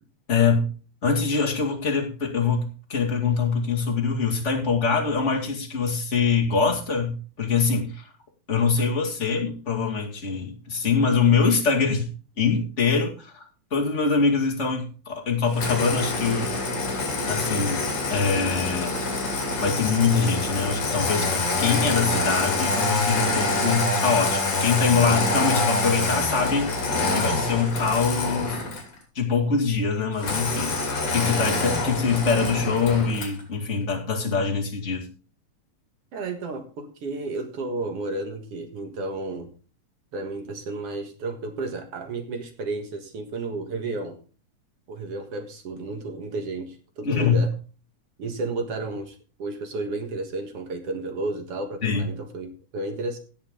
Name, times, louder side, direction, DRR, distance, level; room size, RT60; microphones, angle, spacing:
voice 1, 0.3-0.7 1.0-8.1 8.5-12.1 12.4-13.5 13.7-16.5 17.3-19.0 19.6-26.7 27.1-28.6 29.1-35.1 47.0-47.4 51.8-52.1, left 5 dB, 25° left, 0 dB, 2.1 m, -24 dB
Engine starting, 15.5-28.9 30.2-33.4, left 3 dB, 60° left, 4.0 m, -26 dB
voice 2, 36.1-39.5 40.1-44.2 44.9-47.5 48.2-53.2, right 3 dB, 55° right, 5 dB, 2.4 m, -32 dB
16.5 x 7.0 x 3.7 m, 0.38 s
omnidirectional pair, 3.3 m